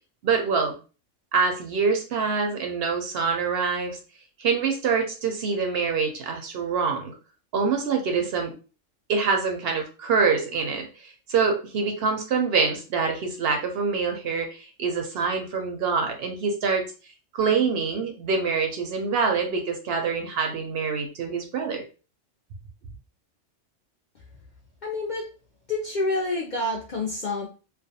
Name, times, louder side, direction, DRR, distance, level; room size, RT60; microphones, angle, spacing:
voice 1, 0.2-0.7 1.3-4.0 4.4-7.1 7.5-8.5 9.1-16.9 17.3-21.8, right 5 dB, 65° right, 3 dB, 0.7 m, -25 dB
voice 2, 24.8-25.3 25.7-27.5, left 2 dB, 65° left, -2 dB, 0.4 m, -28 dB
2.4 x 2.1 x 2.6 m, 0.35 s
omnidirectional pair, 1.3 m